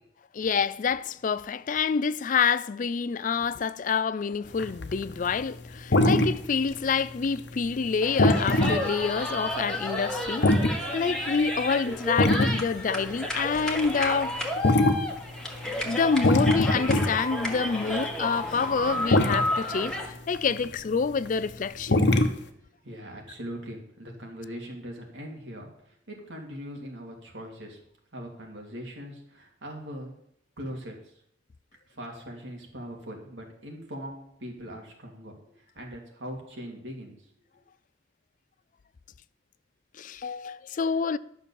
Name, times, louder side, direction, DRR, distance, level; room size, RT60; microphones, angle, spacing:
voice 1, 0.3-10.5 10.9-14.4 15.8-22.0 40.0-41.2, left 5 dB, 45° left, 0.4 m, -27 dB
sound 1, 4.6-5.4 5.7-7.1 7.4-7.8 8.2-9.9 10.2-11.2 11.9-12.6 13.0-13.1 13.4-18.0 18.4-18.8 19.0-19.4 20.3-20.7 21.0-21.4 21.9-22.4, left 1 dB, 65° left, 1.0 m, -23 dB
sound 2, 8.0-20.1, left 1 dB, 5° left, 1.6 m, -32 dB
voice 2, 22.8-27.8 28.1-30.1 30.6-31.1 31.9-37.3 37.5-37.6, equal, 80° right, 2.9 m, -41 dB
11.5 x 6.1 x 7.1 m
head